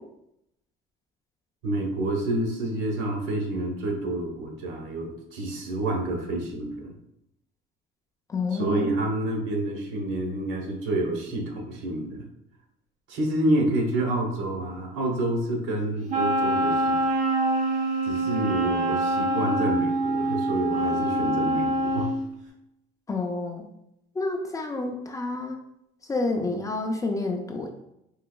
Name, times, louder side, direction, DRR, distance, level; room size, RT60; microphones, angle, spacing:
voice 1, 1.6-6.9 8.5-12.3 13.1-17.2 18.0-22.1, right 1 dB, 80° right, 2 dB, 1.0 m, -28 dB
voice 2, 8.3-8.9 23.1-23.7 24.2-25.6 26.1-27.8, left 3 dB, 15° left, 2 dB, 0.3 m, -29 dB
Wind instrument woodwind instrument, 16.1-22.2, right 1 dB, 35° right, 0.8 m, -25 dB
4.6 x 2.9 x 2.2 m, 0.82 s
cardioid pair, 150°, 20 cm